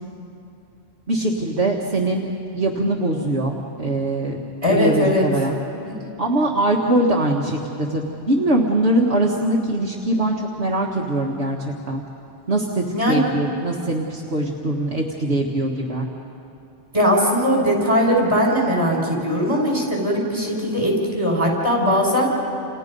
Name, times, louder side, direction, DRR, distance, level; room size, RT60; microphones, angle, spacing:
voice 1, 1.1-2.3 2.5-4.4 4.7-5.6 6.2-12.0 12.5-16.1, right 1 dB, 60° right, -2 dB, 1.9 m, -22 dB
voice 2, 4.6-5.2 6.0-6.1 12.9-13.2 16.9-22.3, equal, 30° right, -2 dB, 6.1 m, -19 dB
29.5 x 29.0 x 5.4 m, 2.8 s
omnidirectional pair, 1.2 m